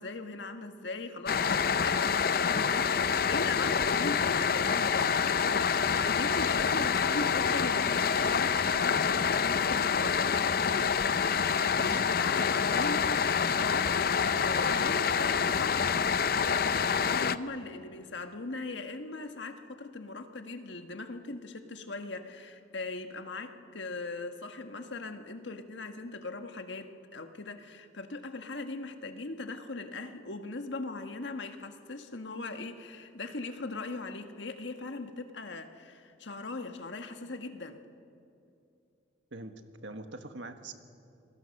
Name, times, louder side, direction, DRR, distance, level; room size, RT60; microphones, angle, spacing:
voice 1, 0.0-10.3 11.8-13.9 14.3-15.9 16.8-37.8, left 3 dB, 80° left, 6 dB, 1.5 m, -39 dB
sound 1, 1.3-17.4, left 6 dB, 55° left, 0.6 m, -27 dB
voice 2, 11.7-12.1 39.3-39.5 39.8-40.7, right 2 dB, 85° right, 7 dB, 1.6 m, -43 dB
27.5 x 21.0 x 6.5 m, 2.6 s
head